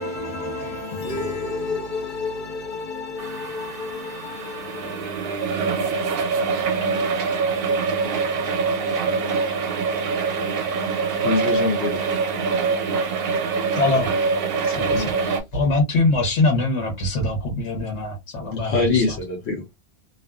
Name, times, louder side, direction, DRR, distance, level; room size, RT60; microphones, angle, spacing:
voice 1, 0.0-5.7, left 3 dB, 50° left, 0.8 m, -31 dB
sound 1, 3.2-15.4, right 4 dB, 65° right, 0.7 m, -24 dB
voice 2, 11.2-12.0 14.6-15.2 18.6-19.6, left 3 dB, 70° left, 1.0 m, -24 dB
voice 3, 13.8-14.1 14.7-19.2, left 2 dB, 90° left, 1.2 m, -23 dB
2.4 x 2.4 x 2.3 m
omnidirectional pair, 1.1 m